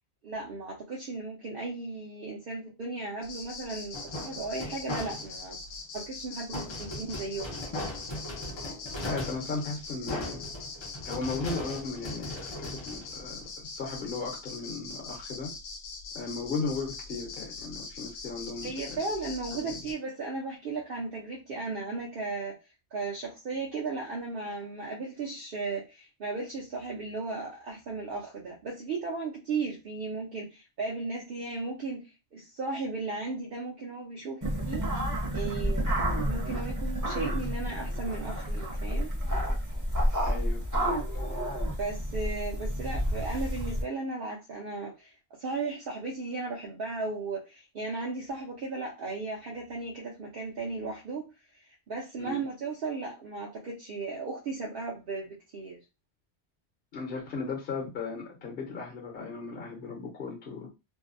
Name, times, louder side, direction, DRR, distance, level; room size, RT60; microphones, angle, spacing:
voice 1, 0.2-5.6 5.9-7.8 18.6-22.6 22.9-32.0 32.3-34.9 35.3-39.1 41.8-51.3 51.9-55.8, right 3 dB, 60° right, 0.8 m, -36 dB
sound 1, 3.2-19.9, left 4 dB, 85° left, 0.9 m, -42 dB
sound 2, 3.9-5.5 6.5-13.7, left 1 dB, 40° left, 0.4 m, -38 dB
voice 2, 9.0-10.4 11.0-15.5 16.1-19.0 19.6-19.8 40.3-41.5 52.2-52.4 56.9-60.7, left 4 dB, 60° left, 0.9 m, -36 dB
sound 3, 34.4-43.8, equal, 20° right, 0.7 m, -30 dB
2.6 x 2.0 x 2.5 m
omnidirectional pair, 1.1 m